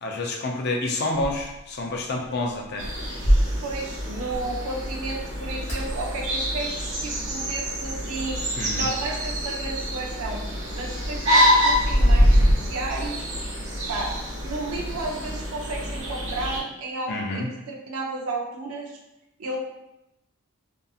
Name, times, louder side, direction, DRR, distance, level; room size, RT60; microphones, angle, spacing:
voice 1, 0.0-2.9 8.6-8.9 17.1-17.5, left 2 dB, 45° left, 0 dB, 0.4 m, -28 dB
sound 1, 1.1-8.2, equal, 10° left, 1.1 m, -31 dB
sound 2, 2.8-16.6, equal, 55° right, 1.2 m, -25 dB
voice 2, 3.6-8.4 8.7-10.4 10.7-13.3 13.9-14.1 14.4-19.0 19.4-19.6, right 2 dB, 75° right, -1 dB, 0.5 m, -32 dB
2.7 x 2.5 x 2.3 m, 0.92 s
head